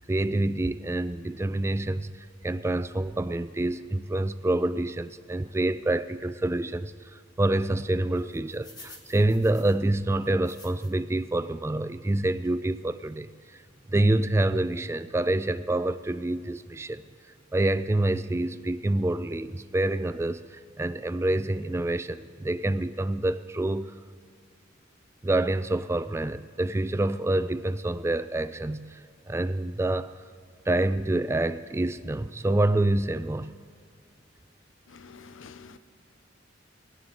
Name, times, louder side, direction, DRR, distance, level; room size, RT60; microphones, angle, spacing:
voice 1, 0.1-2.1 2.4-13.6 13.9-17.0 17.5-23.9 25.2-29.0 29.3-30.2 30.7-33.5, right 1 dB, 15° right, 13 dB, 0.3 m, -27 dB
sound 1, 8.1-11.2 11.6-11.7 12.4-12.6 13.1-13.2 13.4-13.6, left 2 dB, 20° left, 1.6 m, -51 dB
voice 2, 34.9-35.8, left 5 dB, 85° left, 14 dB, 0.6 m, -47 dB
21.0 x 17.5 x 3.9 m, 2.1 s
head